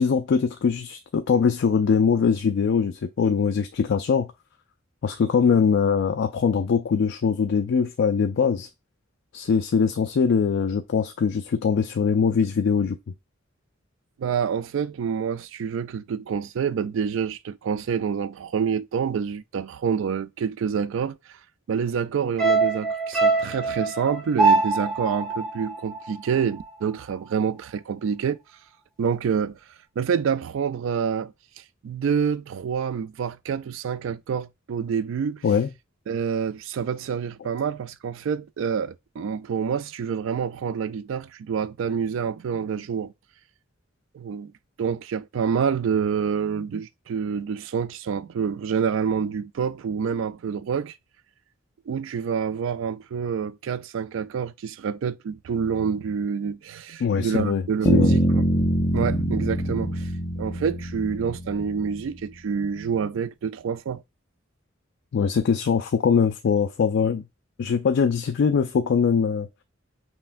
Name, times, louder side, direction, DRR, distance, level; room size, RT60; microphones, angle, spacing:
voice 1, 0.0-4.3 5.0-8.7 9.3-13.0 35.4-35.7 57.0-57.6 57.9-58.1 65.1-67.2 67.6-69.5, left 6 dB, 60° left, 0.4 m, -22 dB
voice 2, 14.2-21.4 21.7-28.4 29.0-29.6 30.0-31.3 31.8-35.4 36.1-43.1 44.1-44.5 44.8-50.9 51.9-60.1 60.4-64.0, right 6 dB, 70° right, 0.3 m, -27 dB
sound 1, 22.4-26.8 27.1-27.2, right 3 dB, 5° left, 1.0 m, -24 dB
sound 2, 57.9-61.8, equal, 20° left, 0.7 m, -23 dB
5.6 x 2.2 x 2.5 m
head